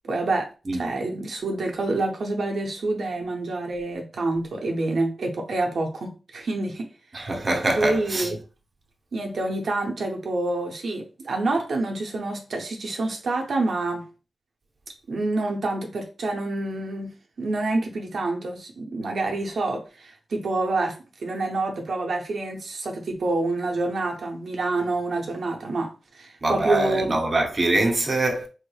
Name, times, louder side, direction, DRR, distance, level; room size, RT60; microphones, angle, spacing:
voice 1, 0.1-6.9 7.2-7.3 7.8-8.4 9.1-14.0 15.1-20.9 21.2-27.2, right 2 dB, 70° right, 0.6 m, -27 dB
voice 2, 7.1-8.3 26.4-28.5, right 2 dB, 35° right, 0.7 m, -24 dB
3.4 x 3.1 x 2.2 m
wide cardioid pair, 85°, 0 cm